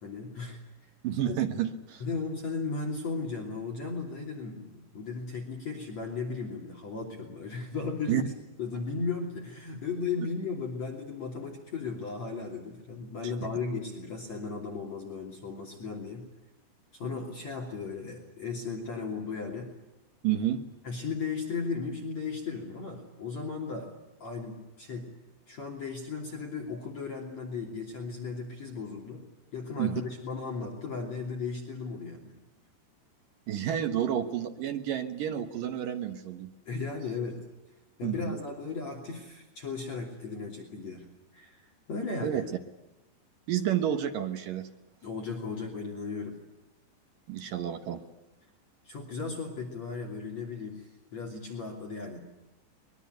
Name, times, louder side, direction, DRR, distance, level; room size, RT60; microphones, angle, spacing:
voice 1, 0.0-0.9 1.2-1.4 2.0-8.3 8.6-16.3 16.9-19.7 20.8-23.9 24.2-25.1 25.5-29.2 29.5-32.3 36.7-37.4 38.0-41.1 41.3-42.4 45.0-46.4 48.8-52.2, left 4 dB, 40° left, 0 dB, 3.7 m, -36 dB
voice 2, 1.0-2.0 8.1-8.2 20.2-20.6 29.8-30.0 33.5-36.5 38.0-38.4 42.2-42.4 43.5-44.7 47.3-48.0, right 10 dB, 65° right, 7 dB, 2.4 m, -30 dB
23.0 x 22.0 x 9.3 m, 0.99 s
omnidirectional pair, 5.2 m